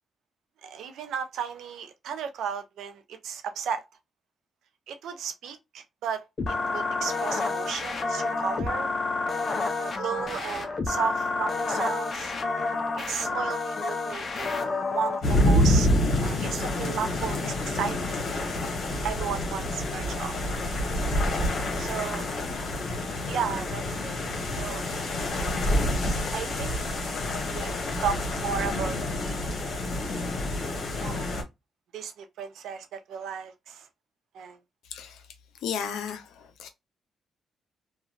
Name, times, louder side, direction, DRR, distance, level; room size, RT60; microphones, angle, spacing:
voice 1, 0.6-3.8 4.9-8.9 9.8-12.3 13.0-14.5 14.9-15.9 16.2-18.2 19.0-20.5 21.8-22.3 23.2-24.8 26.3-26.8 27.5-27.8 28.0-29.4 31.0-31.3 31.9-33.9 34.3-34.6, right 7 dB, 85° right, 0.5 m, -34 dB
sound 1, 6.4-15.2, left 3 dB, 45° left, 0.6 m, -29 dB
sound 2, 15.2-31.4, left 1 dB, 65° left, 1.0 m, -27 dB
voice 2, 35.6-36.2 36.6-36.7, left 7 dB, 90° left, 0.5 m, -32 dB
2.8 x 2.3 x 2.4 m
cardioid pair, 75°, 0 cm